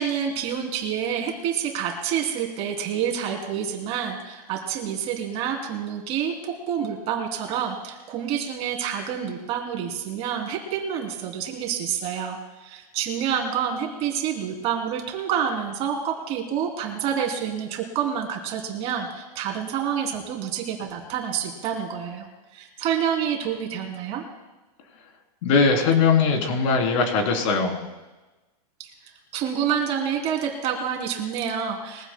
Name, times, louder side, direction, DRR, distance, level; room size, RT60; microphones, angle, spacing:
voice 1, 0.0-22.3 22.5-24.2 28.8-28.9 29.3-32.1, right 8 dB, 30° right, 1 dB, 3.0 m, -28 dB
voice 2, 25.4-27.8, left 5 dB, 50° left, 2 dB, 3.3 m, -20 dB
23.0 x 15.0 x 2.2 m, 1.1 s
supercardioid pair, 160°, 21 cm